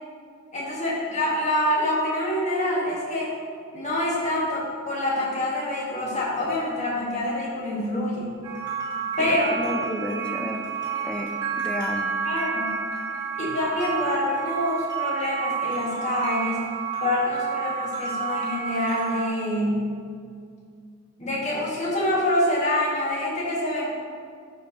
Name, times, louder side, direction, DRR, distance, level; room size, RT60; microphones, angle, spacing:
voice 1, 0.5-3.3 3.7-8.3 9.2-9.6 12.2-12.8 13.4-16.6 17.0-19.9 21.2-23.9, left 1 dB, 35° left, -5 dB, 1.6 m, -26 dB
sound 1, 8.4-19.3, right 6 dB, 20° right, 1.9 m, -30 dB
voice 2, 9.2-10.6 11.0-12.1, equal, 5° left, 3 dB, 0.5 m, -32 dB
12.0 x 4.7 x 3.0 m, 2.3 s
head